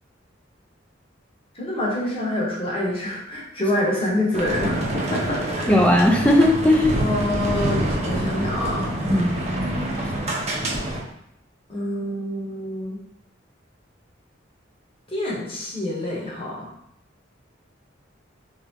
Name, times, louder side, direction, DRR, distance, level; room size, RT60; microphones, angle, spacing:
voice 1, 1.5-5.7 7.0-8.9 11.7-13.0 15.1-16.7, left 1 dB, 30° left, -4 dB, 1.0 m, -26 dB
sound 1, 4.3-11.0, right 1 dB, 35° right, 0.7 m, -26 dB
voice 2, 5.7-7.0 9.1-9.3, left 1 dB, 5° left, 0 dB, 0.4 m, -17 dB
3.3 x 2.9 x 3.6 m, 0.76 s
head